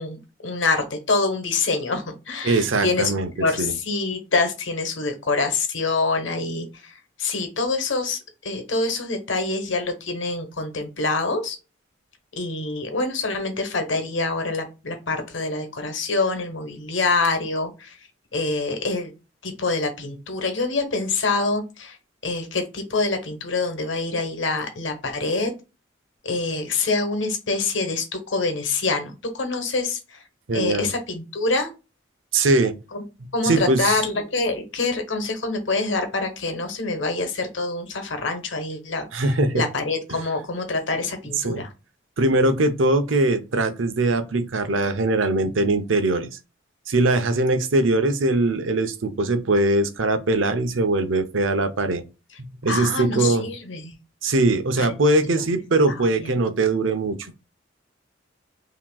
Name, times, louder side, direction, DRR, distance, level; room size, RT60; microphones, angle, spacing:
voice 1, 0.0-11.6 12.4-18.0 18.3-19.1 19.4-22.0 22.2-25.5 26.2-30.2 30.5-31.7 32.9-33.0 33.3-39.3 39.5-41.7 52.7-54.0 54.8-54.9 55.2-55.4 55.9-56.3, left 3 dB, 70° left, 1.2 m, -26 dB
voice 2, 2.4-3.3 3.6-3.7 30.5-30.9 32.3-32.7 33.4-34.0 39.1-39.6 40.1-40.2 41.4-41.6 42.2-46.3 46.9-52.0 52.6-53.5 54.2-57.4, right 2 dB, 80° right, 0.7 m, -21 dB
5.9 x 2.9 x 2.3 m
head